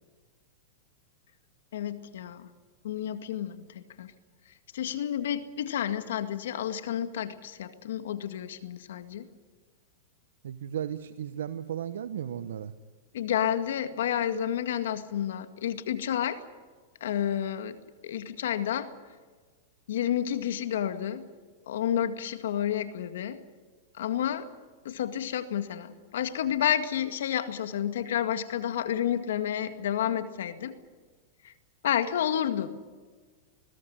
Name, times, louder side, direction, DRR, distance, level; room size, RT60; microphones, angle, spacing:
voice 1, 1.7-2.5 2.8-4.1 4.7-9.3 13.1-16.4 17.0-17.8 18.0-18.9 19.9-21.2 21.7-23.4 24.0-24.5 24.8-30.7 31.4-31.5 31.8-32.8, left 10 dB, 75° left, 9 dB, 2.0 m, -30 dB
voice 2, 10.4-12.7, right 9 dB, 80° right, 12 dB, 0.9 m, -35 dB
21.0 x 17.5 x 10.0 m, 1.4 s
hypercardioid pair, 125°, 0 cm